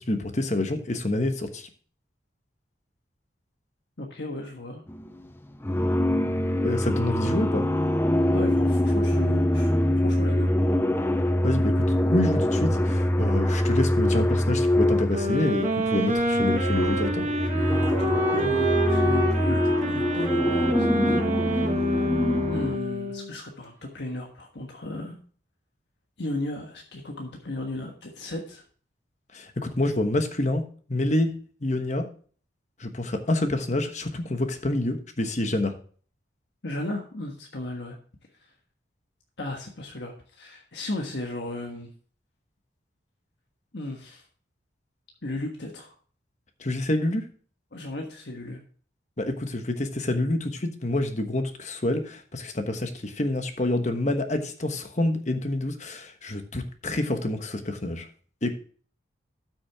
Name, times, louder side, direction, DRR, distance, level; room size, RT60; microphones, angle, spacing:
voice 1, 0.0-1.7 6.6-7.7 11.4-17.3 29.3-30.6 30.9-31.3 31.6-32.0 32.8-35.7 46.6-47.3 49.2-58.0 58.4-58.5, left 1 dB, 40° left, 7 dB, 1.2 m, -27 dB
voice 2, 4.0-4.8 8.3-9.7 10.0-10.5 17.5-21.3 21.9-22.1 22.5-25.2 26.2-28.6 36.6-38.0 38.4-38.5 39.4-41.9 43.7-44.2 45.2-45.9 47.7-48.6, left 1 dB, 70° left, 1 dB, 1.4 m, -35 dB
sound 1, 4.9-5.2 5.6-15.6 16.2-22.8, left 1 dB, 10° left, 0.5 m, -24 dB
sound 2, 15.1-23.3, right 1 dB, 40° right, 1.7 m, -27 dB
13.0 x 6.2 x 3.5 m, 0.44 s
head